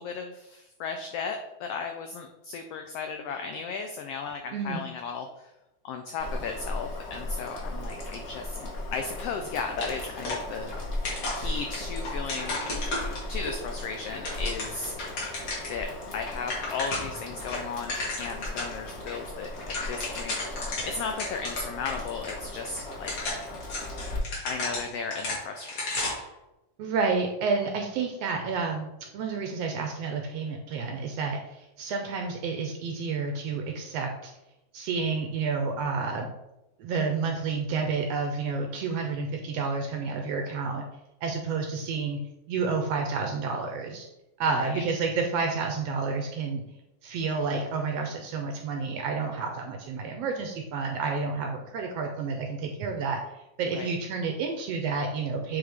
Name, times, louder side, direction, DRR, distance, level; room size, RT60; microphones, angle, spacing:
voice 1, 0.0-5.3 5.8-10.9 11.3-12.6 13.3-14.9 15.7-23.1 24.4-25.7 26.0-26.1 44.5-44.8 53.7-53.9, left 5 dB, 85° left, 5 dB, 1.3 m, -35 dB
voice 2, 4.5-4.8 26.8-34.3 34.7-36.3 36.8-40.8 41.2-42.2 42.5-44.1 44.4-46.6 47.0-53.2 53.6-55.6, right 4 dB, 75° right, 3 dB, 1.6 m, -30 dB
Boiling, 6.2-24.2, left 1 dB, 30° left, 1.4 m, -37 dB
sound 1, 9.8-10.8 11.0-13.5 14.0-15.8 16.1-16.2 16.4-17.2 17.5-18.7 19.1-19.2 19.5-21.9 22.2-22.3 22.9-26.3, left 2 dB, 50° left, 2.3 m, -33 dB
7.8 x 3.6 x 3.4 m, 0.92 s
omnidirectional pair, 3.3 m